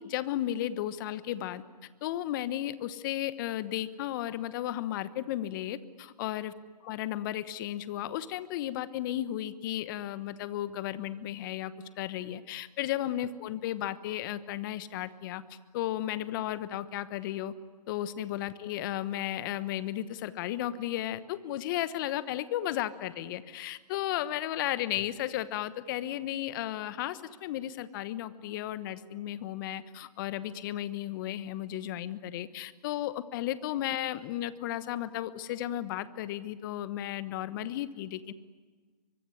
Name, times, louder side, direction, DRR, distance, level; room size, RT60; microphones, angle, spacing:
voice 1, 0.0-1.6 2.0-6.5 6.8-15.4 15.7-17.5 17.9-38.3, left 13 dB, 30° left, 15 dB, 1.1 m, -34 dB
23.5 x 23.0 x 9.9 m, 1.4 s
hypercardioid pair, 150°, 21 cm